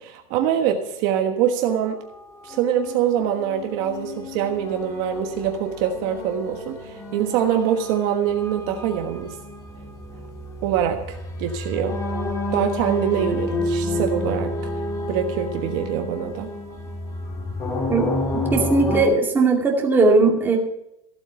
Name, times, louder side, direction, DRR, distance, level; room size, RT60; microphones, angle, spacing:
voice 1, 0.0-2.0 2.4-9.4 10.6-12.0 12.5-16.5, right 9 dB, 45° right, 4 dB, 1.4 m, -24 dB
sound 1, 2.5-19.0, left 2 dB, 20° left, 2.3 m, -30 dB
voice 2, 18.3-20.6, right 3 dB, 10° right, -1 dB, 2.4 m, -18 dB
15.5 x 8.2 x 7.0 m, 0.83 s
supercardioid pair, 170°, 18 cm